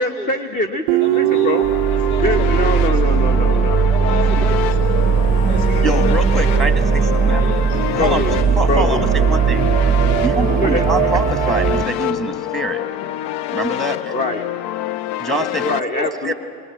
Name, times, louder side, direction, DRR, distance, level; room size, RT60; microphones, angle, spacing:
voice 1, 0.0-1.6 2.2-3.8 4.4-4.5 5.7-5.8 8.0-8.4 8.7-9.0 10.6-10.8 14.1-14.4 15.6-16.3, left 1 dB, 20° left, 5 dB, 1.1 m, -23 dB
Guitar, 0.9-4.2, right 18 dB, 45° right, 0.5 m, -22 dB
voice 2, 1.0-1.6 1.9-3.3 3.8-5.1 5.5-6.3 6.6-7.8 8.8-8.9 15.9-16.1, left 1 dB, 75° left, 2 dB, 2.1 m, -32 dB
sound 1, 1.0-15.8, left 13 dB, 45° left, 0.5 m, -26 dB
sound 2, 1.6-11.9, right 6 dB, 15° right, 0.8 m, -18 dB
voice 3, 5.8-7.4 7.9-9.7 10.2-12.8 13.5-14.1 15.2-15.7 16.2-16.3, right 1 dB, ahead, 8 dB, 1.5 m, -24 dB
21.5 x 20.0 x 8.6 m, 2.2 s
hypercardioid pair, 95°, 46 cm